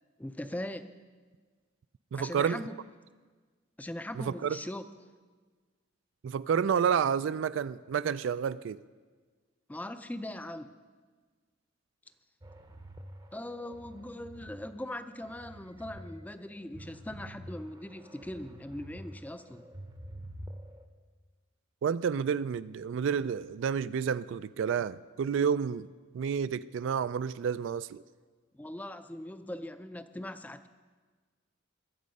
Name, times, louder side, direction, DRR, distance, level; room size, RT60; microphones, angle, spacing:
voice 1, 0.2-0.9 2.1-2.8 3.8-4.8 9.7-10.8 13.3-19.7 28.5-30.7, left 1 dB, 10° left, 0.4 m, -40 dB
voice 2, 2.1-2.6 4.2-4.6 6.2-8.8 21.8-25.9 26.1-28.0, right 7 dB, 65° right, 0.3 m, -30 dB
sound 1, 12.4-14.5 14.9-16.0 16.4-19.0 19.4-20.8, right 1 dB, 20° right, 0.7 m, -48 dB
22.0 x 7.4 x 5.3 m
head